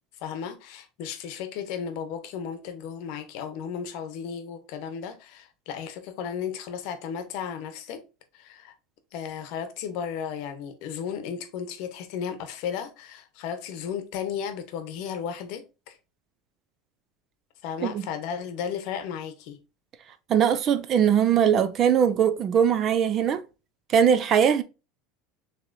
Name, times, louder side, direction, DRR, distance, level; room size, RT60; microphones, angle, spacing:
voice 1, 0.2-8.0 8.3-8.7 9.1-16.0 17.6-19.6, left 7 dB, 55° left, 0.8 m, -34 dB
voice 2, 20.3-23.4 23.9-24.6, right 8 dB, 30° right, 0.4 m, -21 dB
6.8 x 3.0 x 2.5 m
cardioid pair, 165°, 0 cm